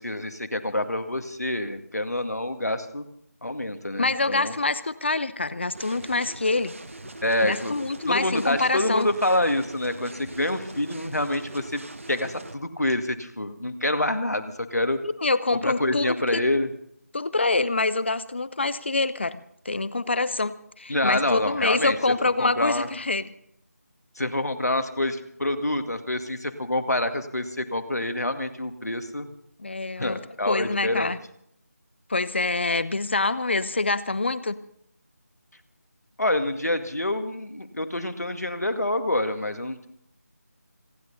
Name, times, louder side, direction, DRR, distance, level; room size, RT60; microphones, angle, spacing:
voice 1, 0.0-3.0 3.4-4.5 7.2-7.7 8.1-11.8 12.1-15.0 15.6-16.7 20.9-22.0 22.4-22.9 24.2-29.3 30.0-31.1 36.2-39.9, left 1 dB, 70° left, 7 dB, 2.0 m, -27 dB
voice 2, 4.0-6.7 7.4-9.1 15.0-16.4 17.1-23.3 29.6-30.2 30.5-31.2 32.1-34.6, left 3 dB, 45° left, 16 dB, 0.8 m, -26 dB
sound 1, 5.7-12.5, right 2 dB, 50° right, 1.6 m, -42 dB
26.5 x 11.5 x 4.1 m, 0.71 s
figure-of-eight pair, 165°, 9 cm